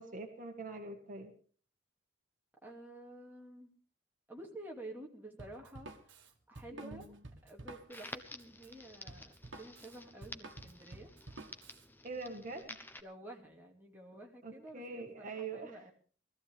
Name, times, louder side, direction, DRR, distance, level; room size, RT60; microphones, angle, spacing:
voice 1, 0.0-1.3 6.8-7.0 12.0-12.8 14.4-15.8, right 3 dB, 45° right, 4 dB, 1.6 m, -44 dB
voice 2, 2.6-3.7 4.3-7.1 7.4-11.1 13.0-15.9, right 1 dB, 10° right, 0 dB, 2.4 m, -51 dB
Drum kit, 5.4-11.9, right 2 dB, 70° right, 1.6 m, -51 dB
Crackle, 7.9-13.0, left 2 dB, 10° left, 0.9 m, -51 dB
20.5 x 14.5 x 3.4 m, 0.41 s
head